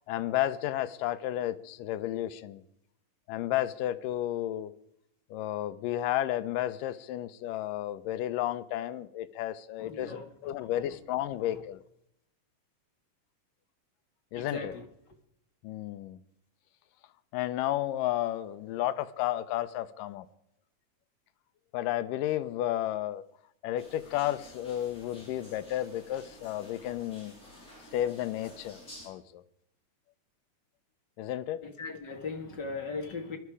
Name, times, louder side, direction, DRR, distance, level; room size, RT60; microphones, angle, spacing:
voice 1, 0.0-2.6 3.3-4.7 5.3-11.8 14.3-14.7 15.6-16.2 17.3-20.3 21.7-23.2 23.6-27.3 27.9-28.8 29.1-29.4 31.2-31.6, left 13 dB, 80° left, 14 dB, 2.3 m, -32 dB
voice 2, 9.8-10.2 14.3-14.7 31.6-33.4, left 4 dB, 40° left, 5 dB, 1.8 m, -38 dB
sound 1, 23.8-29.1, left 1 dB, 25° left, 8.5 m, -52 dB
21.5 x 12.5 x 4.8 m, 0.77 s
omnidirectional pair, 3.8 m